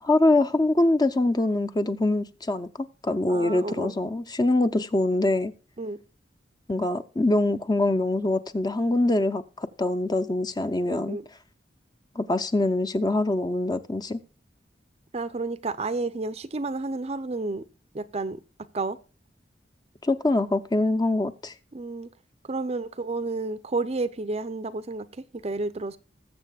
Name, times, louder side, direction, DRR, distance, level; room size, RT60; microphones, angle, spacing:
voice 1, 0.0-5.5 6.7-11.2 12.2-14.2 20.0-21.5, left 2 dB, 25° left, 0.6 m, -24 dB
voice 2, 3.3-3.9 5.8-6.0 10.9-11.2 15.1-17.6 17.9-18.4 18.7-19.0 21.7-22.1 22.5-26.0, right 3 dB, 35° right, 0.6 m, -31 dB
20.0 x 7.5 x 2.3 m
head